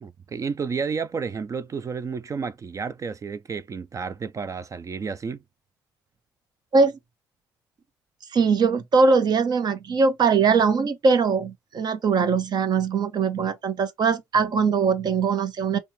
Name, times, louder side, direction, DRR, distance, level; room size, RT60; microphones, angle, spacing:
voice 1, 0.0-5.4, right 5 dB, 40° right, 0.4 m, -31 dB
voice 2, 8.3-15.8, right 5 dB, 55° right, 0.8 m, -21 dB
4.1 x 2.3 x 3.0 m
supercardioid pair, 60°, 9 cm